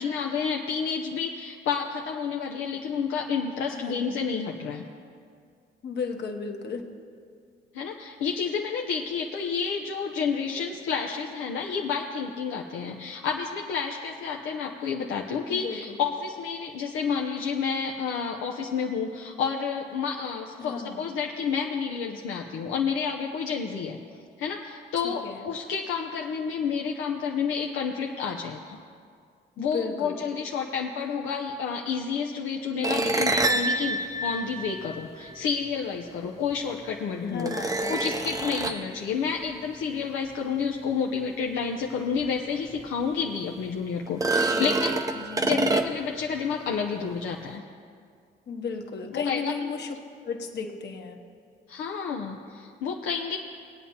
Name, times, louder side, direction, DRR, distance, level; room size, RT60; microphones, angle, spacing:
voice 1, 0.0-4.8 7.7-24.0 24.4-28.8 29.6-37.5 37.9-45.0 45.4-47.6 49.1-49.5 51.7-53.4, left 6 dB, 85° left, 0 dB, 0.7 m, -30 dB
voice 2, 3.7-4.2 5.8-6.8 15.5-16.0 20.6-21.1 25.0-25.5 29.6-30.2 32.8-33.6 37.2-38.2 44.3-44.8 45.2-45.6 48.5-50.0 50.2-51.2, left 5 dB, 60° left, 3 dB, 1.3 m, -35 dB
sound 1, 32.8-35.3 36.5-36.6 37.4-38.9 42.2-42.3 42.8-42.9 44.1-46.2, right 2 dB, 15° right, 0.6 m, -27 dB
21.0 x 8.6 x 2.8 m, 2.2 s
cardioid pair, 90°, 20 cm